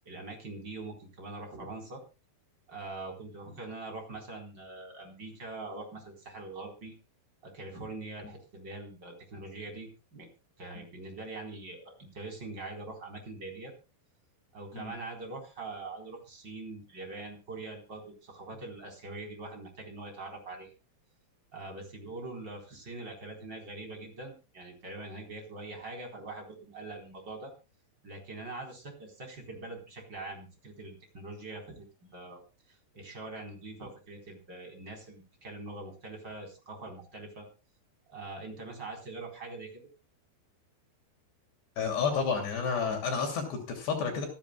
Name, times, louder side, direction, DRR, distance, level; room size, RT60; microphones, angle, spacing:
voice 1, 0.1-2.0 2.7-6.9 7.4-10.3 10.6-13.7 14.5-20.7 21.5-27.5 28.0-32.4 32.7-37.4 38.1-39.9, right 2 dB, 25° right, 2 dB, 4.2 m, -43 dB
voice 2, 41.8-44.3, left 5 dB, 65° left, 3 dB, 4.7 m, -30 dB
25.5 x 10.5 x 2.3 m, 0.30 s
omnidirectional pair, 5.2 m